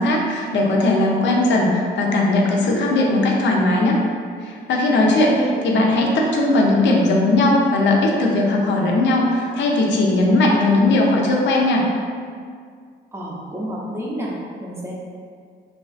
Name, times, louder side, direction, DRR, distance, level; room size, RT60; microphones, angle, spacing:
voice 1, 0.0-4.0 4.4-5.3 5.6-11.8, left 2 dB, 65° left, -1 dB, 0.5 m, -18 dB
voice 2, 5.2-5.5 13.1-14.3 14.6-14.9, right 1 dB, 15° right, -5 dB, 0.5 m, -29 dB
2.6 x 2.3 x 2.4 m, 2.1 s
cardioid pair, 90°, 20 cm